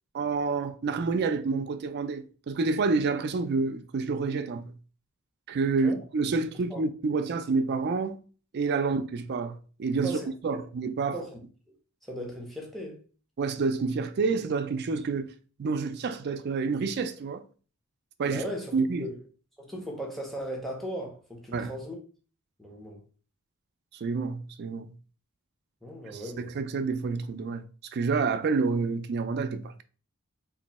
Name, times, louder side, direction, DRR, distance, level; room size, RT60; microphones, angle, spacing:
voice 1, 0.1-4.7 5.5-8.2 8.5-11.2 13.4-15.3 15.6-17.4 18.2-18.4 18.7-19.1 21.5-21.8 23.9-24.9 26.1-27.6 27.9-29.8, right 4 dB, 50° right, 0.4 m, -28 dB
voice 2, 12.1-13.0 18.2-19.2 19.6-22.0 22.6-23.0 25.8-26.5, equal, ahead, 0.8 m, -37 dB
3.0 x 2.6 x 4.1 m
head